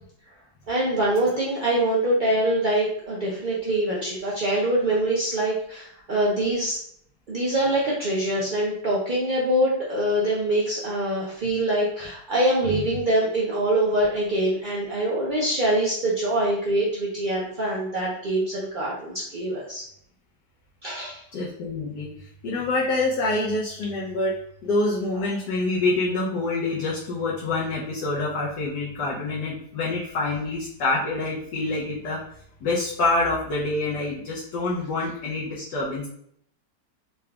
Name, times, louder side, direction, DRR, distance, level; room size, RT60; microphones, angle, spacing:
voice 1, 0.7-6.8 7.3-19.8 20.8-21.2, right 1 dB, 65° right, -5 dB, 0.5 m, -24 dB
voice 2, 21.3-32.2 32.6-36.1, left 2 dB, 80° left, -5 dB, 1.4 m, -26 dB
3.9 x 2.4 x 3.3 m, 0.68 s
omnidirectional pair, 1.8 m